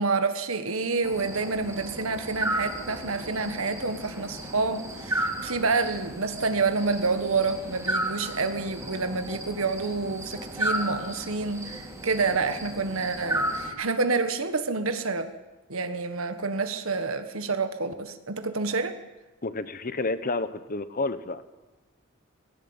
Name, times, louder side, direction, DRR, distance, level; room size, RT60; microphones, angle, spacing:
voice 1, 0.0-15.3 15.7-19.0, right 4 dB, 70° right, 9 dB, 1.4 m, -28 dB
sound 1, 1.0-13.7, right 1 dB, 15° right, 3.4 m, -34 dB
voice 2, 19.4-21.4, left 3 dB, 40° left, 13 dB, 1.1 m, -30 dB
18.5 x 16.5 x 8.9 m, 1.1 s
head